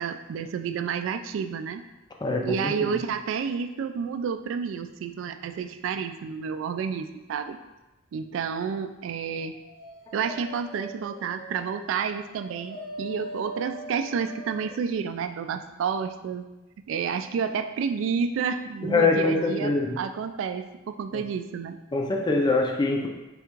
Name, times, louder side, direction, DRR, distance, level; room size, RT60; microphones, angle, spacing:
voice 1, 0.0-1.8 2.4-7.6 8.1-9.6 10.1-16.5 16.9-21.8, right 6 dB, 90° right, 9 dB, 0.3 m, -30 dB
voice 2, 2.2-3.0 18.8-20.0 21.1-21.3 21.9-23.1, left 3 dB, 20° left, 2 dB, 0.4 m, -24 dB
Dog, 9.3-14.8, right 1 dB, 60° left, 1.0 m, -41 dB
3.5 x 2.4 x 4.5 m, 1.1 s
head